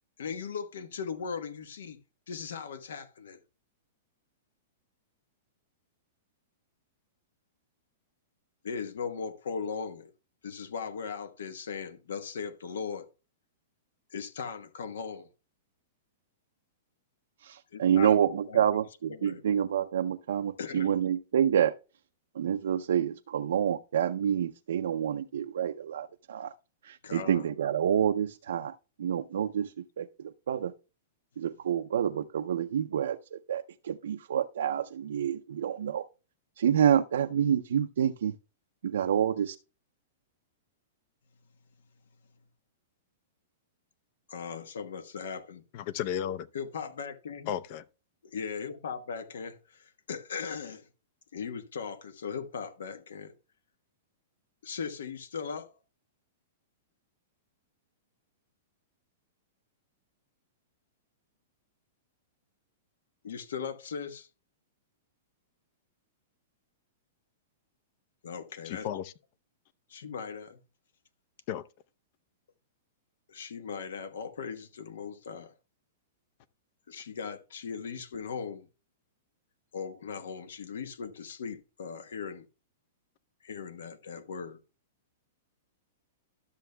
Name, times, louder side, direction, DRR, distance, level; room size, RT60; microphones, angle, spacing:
voice 1, 0.2-2.0 2.3-3.4 8.6-10.1 10.4-13.1 14.1-15.3 17.7-18.2 18.5-18.6 19.1-19.4 20.6-20.9 27.0-27.4 44.3-45.6 46.5-47.5 48.2-50.9 51.3-53.3 54.6-55.7 63.2-64.3 68.2-68.9 69.9-70.6 73.3-75.5 76.9-78.7 79.7-82.5 83.4-84.6, left 6 dB, 85° left, 1.1 m, -38 dB
voice 2, 17.4-21.7 22.3-26.5 26.8-30.7 31.4-36.1 36.6-38.4 38.8-39.6, right 9 dB, 80° right, 0.5 m, -28 dB
voice 3, 45.7-46.5 47.5-47.8 68.6-69.1 71.5-71.6, left 10 dB, 50° left, 0.6 m, -33 dB
12.5 x 6.9 x 2.2 m
hypercardioid pair, 140°, 0 cm